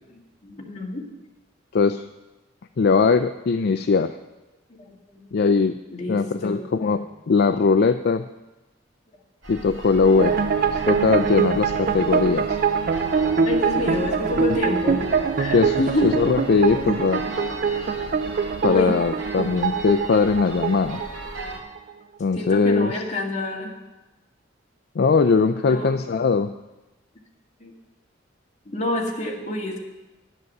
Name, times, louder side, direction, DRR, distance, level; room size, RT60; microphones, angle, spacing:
voice 1, 0.4-1.1 4.7-5.2 5.9-7.0 13.0-15.1 15.4-16.2 18.6-18.9 22.3-23.8 25.6-25.9 27.6-27.7 28.7-29.8, left 2 dB, 35° left, -1 dB, 1.9 m, -28 dB
voice 2, 1.7-2.1 2.8-4.2 5.3-5.7 6.1-8.3 9.5-10.4 10.7-12.6 14.4-14.6 15.5-17.2 18.6-21.0 22.2-23.0 25.0-26.5, left 4 dB, 55° left, 10 dB, 0.4 m, -20 dB
sound 1, 9.4-21.6, right 1 dB, 80° right, 2.5 m, -37 dB
sound 2, 10.2-21.9, right 5 dB, 50° right, 0.4 m, -24 dB
11.0 x 8.0 x 6.6 m, 1.1 s
head